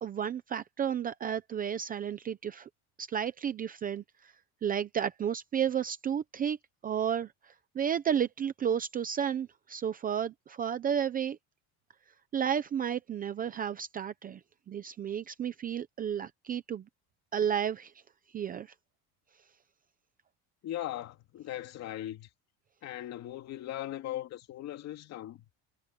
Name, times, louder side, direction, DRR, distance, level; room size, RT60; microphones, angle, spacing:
voice 1, 0.0-2.7 3.0-4.3 4.6-6.6 6.8-11.4 12.3-14.4 14.7-16.9 17.3-17.9 18.3-18.7, right 8 dB, 20° right, 0.6 m, -32 dB
voice 2, 20.6-22.3 22.8-25.4, left 13 dB, 40° left, 2.5 m, -39 dB
cardioid pair, 175°, 39 cm